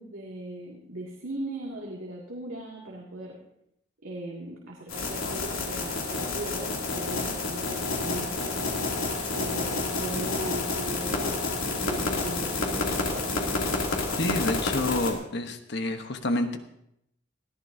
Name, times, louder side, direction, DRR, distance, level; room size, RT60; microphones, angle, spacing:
voice 1, 0.0-3.4 4.0-8.7 9.3-13.3, right 1 dB, 70° right, -3 dB, 2.3 m, -38 dB
sound 1, 4.9-15.1, left 3 dB, 85° left, 2.7 m, -29 dB
voice 2, 14.2-16.6, left 2 dB, 55° left, 7 dB, 1.0 m, -28 dB
19.5 x 14.0 x 2.7 m, 0.77 s
head